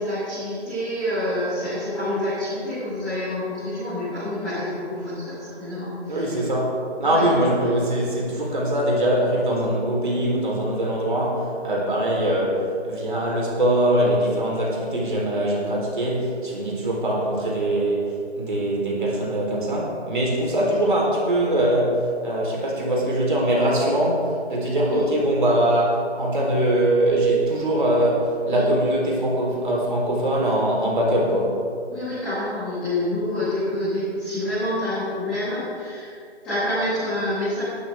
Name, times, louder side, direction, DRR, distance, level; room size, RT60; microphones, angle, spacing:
voice 1, 0.0-6.4 7.0-7.2 7.6-7.7 20.5-20.7 24.8-25.0 28.4-28.6 31.9-36.1 36.4-37.6, left 1 dB, 5° left, -18 dB, 1.5 m, -27 dB
voice 2, 6.1-31.7, right 1 dB, 45° right, -3 dB, 4.1 m, -22 dB
18.0 x 12.0 x 3.7 m, 2.3 s
figure-of-eight pair, 170°, 34 cm